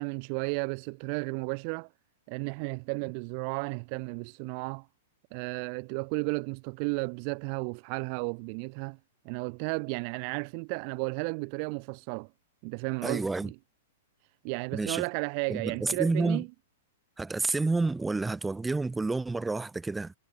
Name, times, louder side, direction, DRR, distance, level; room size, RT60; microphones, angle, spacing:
voice 1, 0.0-1.9 2.3-4.9 5.3-9.0 9.2-12.3 12.6-13.5 14.4-16.5, right 40 dB or more, 40° right, 0.6 m, -33 dB
voice 2, 13.0-13.5 14.7-15.0 15.5-16.4 17.2-20.1, right 3 dB, 10° right, 1.1 m, -29 dB
figure-of-eight pair, 100°, 0 cm